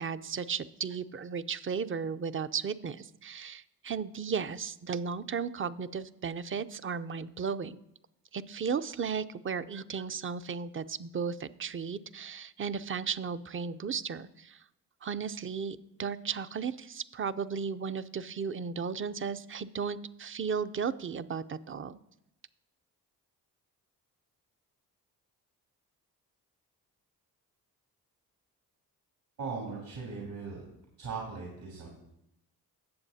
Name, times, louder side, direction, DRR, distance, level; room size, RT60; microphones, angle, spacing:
voice 1, 0.0-7.8 8.3-14.6 15.0-22.0, right 6 dB, 30° right, 13 dB, 0.5 m, -35 dB
voice 2, 29.4-30.6 31.0-31.9, right 4 dB, 75° right, -3 dB, 3.2 m, -38 dB
16.5 x 7.1 x 2.8 m, 0.82 s
supercardioid pair, 50°, 39 cm